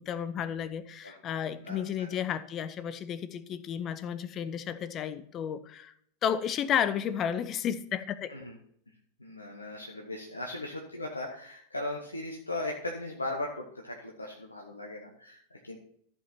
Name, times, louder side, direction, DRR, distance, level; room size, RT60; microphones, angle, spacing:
voice 1, 0.0-5.9 6.2-8.3, left 8 dB, 30° left, 15 dB, 0.8 m, -32 dB
voice 2, 1.6-2.2 8.3-8.6 9.2-15.8, left 2 dB, 80° left, 0 dB, 1.4 m, -38 dB
14.0 x 5.8 x 4.3 m, 0.65 s
figure-of-eight pair, 90°, 0 cm